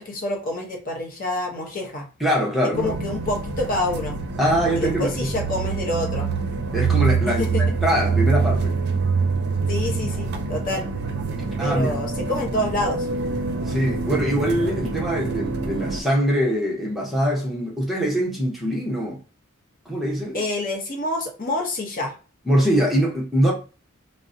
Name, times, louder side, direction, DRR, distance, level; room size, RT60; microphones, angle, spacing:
voice 1, 0.0-2.1 2.8-4.2 4.8-6.3 7.3-7.6 9.7-10.9 11.6-13.1 20.3-22.1, left 1 dB, 40° left, 0.7 m, -27 dB
voice 2, 2.2-2.9 4.4-5.3 6.7-8.8 11.6-11.9 13.7-19.2 19.9-20.4 22.5-23.5, equal, ahead, 0.7 m, -23 dB
sound 1, 2.7-16.0, right 4 dB, 50° right, 0.5 m, -25 dB
3.8 x 2.1 x 2.6 m
head